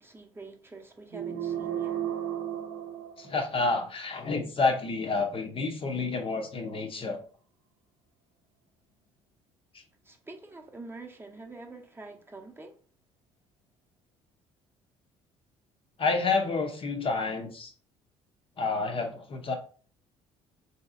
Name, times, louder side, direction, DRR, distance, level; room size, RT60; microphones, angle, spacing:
voice 1, 0.0-2.0 10.0-12.8, right 3 dB, 15° right, 0.7 m, -46 dB
sound 1, 1.1-3.8, right 10 dB, 70° right, 0.7 m, -34 dB
voice 2, 3.2-7.2 9.7-9.8 16.0-17.7 18.6-19.6, left 3 dB, 35° left, 0.6 m, -29 dB
3.9 x 2.8 x 2.5 m
figure-of-eight pair, 55°, 16 cm